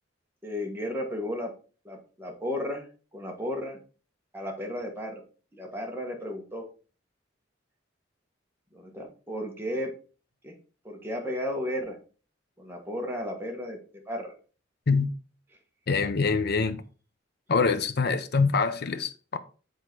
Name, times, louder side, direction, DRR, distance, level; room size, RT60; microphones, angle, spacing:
voice 1, 0.4-1.5 1.8-2.9 3.1-3.8 4.3-5.2 5.5-6.7 8.7-9.9 10.4-10.5 10.8-12.0 12.6-13.8 14.1-14.3, left 1 dB, 10° right, 1.4 m, -34 dB
voice 2, 15.9-16.8 17.5-19.4, left 4 dB, 55° left, 0.7 m, -25 dB
7.7 x 3.8 x 4.5 m
head